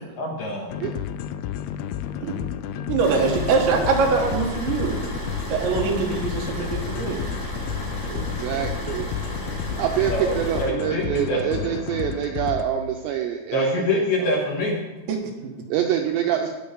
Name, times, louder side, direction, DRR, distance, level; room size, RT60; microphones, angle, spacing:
voice 1, 0.2-0.8 9.7-9.8 10.1-11.7 13.5-14.8, left 1 dB, 65° left, -1 dB, 2.7 m, -25 dB
sound 1, 0.7-12.7, left 9 dB, 85° left, 2.8 m, -32 dB
voice 2, 2.9-5.0 5.5-7.4 8.2-8.3 15.1-15.5, right 4 dB, 70° right, 1 dB, 3.4 m, -23 dB
sound 2, 3.0-10.6, right 1 dB, 50° left, 5.9 m, -33 dB
voice 3, 8.1-9.1 9.8-13.9 14.2-14.3 15.7-16.5, right 10 dB, 90° right, 3 dB, 2.5 m, -26 dB
18.5 x 6.3 x 5.2 m, 1.1 s
omnidirectional pair, 5.9 m